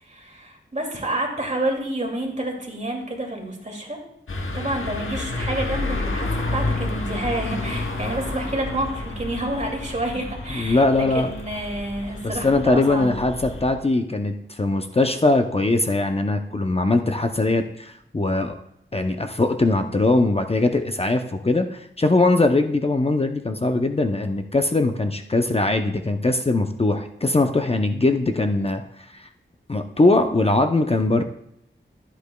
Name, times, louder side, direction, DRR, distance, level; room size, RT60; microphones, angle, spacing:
voice 1, 0.0-4.0 4.5-13.1, right 1 dB, 35° right, 1 dB, 2.4 m, -29 dB
sound 1, 4.3-13.7, left 2 dB, 85° left, 1.1 m, -30 dB
voice 2, 10.5-11.3 12.2-18.6 18.9-29.3 29.7-31.2, left 2 dB, 30° left, 6 dB, 0.6 m, -21 dB
12.5 x 8.2 x 2.3 m, 0.75 s
wide cardioid pair, 55°, 20 cm